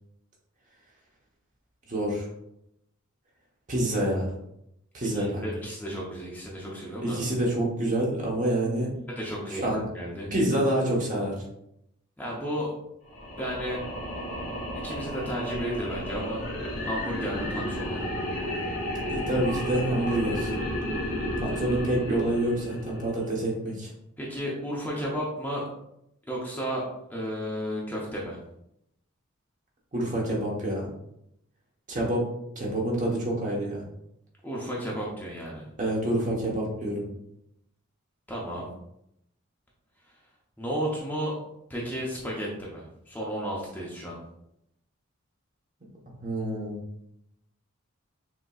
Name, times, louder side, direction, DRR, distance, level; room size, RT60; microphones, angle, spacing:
voice 1, 1.9-2.3 3.7-4.4 4.9-5.4 7.0-8.9 9.5-9.8 10.3-11.3 19.1-20.5 21.4-23.9 29.9-30.9 31.9-32.3 32.6-33.8 35.8-37.1 46.2-46.8, right 1 dB, 40° right, -2 dB, 1.2 m, -27 dB
voice 2, 5.1-7.2 9.1-9.6 9.9-10.3 12.2-12.7 13.4-13.8 14.8-16.4 16.8-18.1 24.2-25.6 26.3-26.8 27.1-28.4 34.4-35.7 38.3-38.7 40.6-41.4 41.7-44.2, equal, 10° left, -4 dB, 0.7 m, -33 dB
sound 1, 13.1-23.4, equal, 75° left, 1.6 m, -32 dB
6.2 x 2.9 x 2.4 m, 0.79 s
head